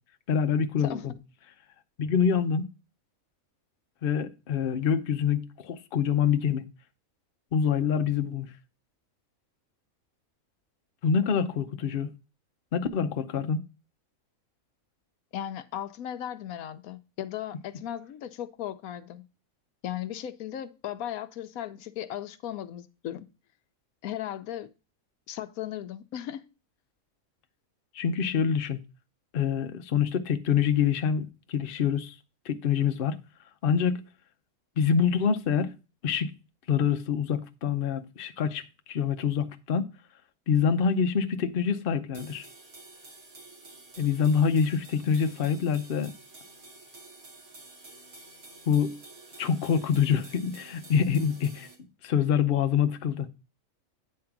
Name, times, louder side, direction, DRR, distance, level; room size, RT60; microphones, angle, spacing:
voice 1, 0.3-1.1 2.0-2.7 4.0-6.6 7.5-8.5 11.0-12.1 12.7-13.6 27.9-28.8 29.3-32.1 32.5-33.2 33.6-34.0 34.8-35.7 36.0-36.3 36.7-38.6 38.9-39.9 40.5-42.5 44.0-46.1 48.7-49.0 49.4-51.7 52.0-53.3, left 7 dB, 50° left, 0.8 m, -26 dB
voice 2, 15.3-19.2 19.8-23.3 24.0-24.7 25.3-26.5, left 11 dB, 85° left, 1.1 m, -36 dB
sound 1, 42.1-51.8, right 3 dB, 85° right, 2.7 m, -50 dB
9.6 x 3.8 x 5.8 m
omnidirectional pair, 1.5 m